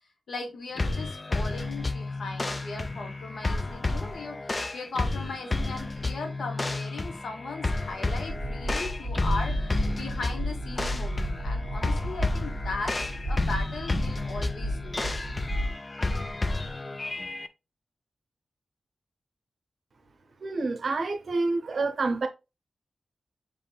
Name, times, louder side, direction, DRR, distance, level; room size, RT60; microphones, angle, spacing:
voice 1, 0.3-9.5 9.9-12.9 13.2-15.2, left 3 dB, 90° left, 1.1 m, -38 dB
sound 1, 0.8-17.5, left 2 dB, 30° left, 0.4 m, -31 dB
sound 2, 8.3-15.7, equal, 50° left, 1.7 m, -32 dB
voice 2, 20.4-22.3, right 3 dB, 65° right, 0.7 m, -28 dB
7.1 x 3.0 x 2.2 m
wide cardioid pair, 95°, 0 cm